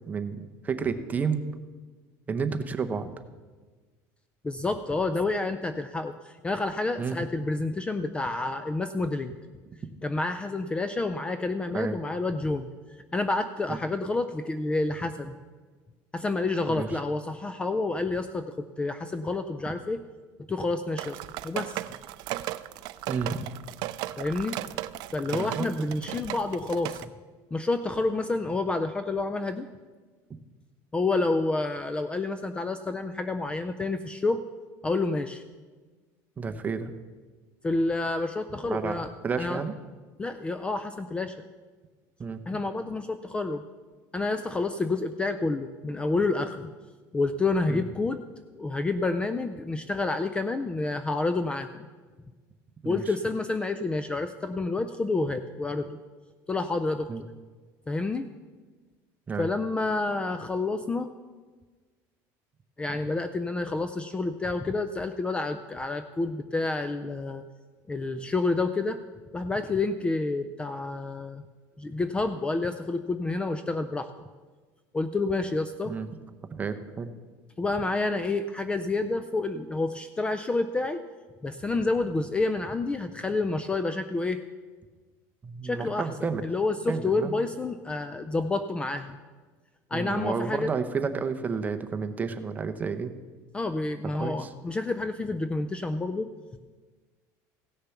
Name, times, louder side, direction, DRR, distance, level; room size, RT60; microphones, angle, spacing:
voice 1, 0.1-1.4 2.3-3.1 7.0-7.2 11.7-12.0 13.7-13.8 16.8-16.9 23.1-23.5 25.3-25.7 36.4-36.9 38.6-39.7 42.2-42.4 47.7-47.8 52.8-53.0 57.1-57.2 59.3-59.5 62.9-63.0 75.9-76.1 76.5-77.1 85.4-86.4 86.9-87.3 89.9-93.1 94.2-94.5, right 5 dB, 20° right, 7 dB, 0.7 m, -31 dB
voice 2, 4.4-9.4 10.0-12.7 13.1-15.4 16.1-20.0 20.5-21.8 24.2-24.6 25.1-27.1 27.5-29.7 30.9-34.4 34.8-35.4 37.6-39.1 39.4-39.6 40.2-41.4 42.5-43.6 44.1-46.7 47.1-48.3 48.5-51.9 52.9-56.0 56.5-57.1 57.9-58.3 59.4-61.1 62.8-67.4 67.9-69.0 69.3-71.4 71.8-74.1 74.9-75.9 77.6-81.1 81.4-84.4 85.6-86.1 86.4-89.2 89.9-90.7 93.5-96.3, left 3 dB, 10° left, 10 dB, 0.4 m, -29 dB
sound 1, 21.0-27.0, right 15 dB, 55° right, 0.4 m, -36 dB
16.0 x 6.7 x 5.8 m, 1.4 s
cardioid pair, 150°, 8 cm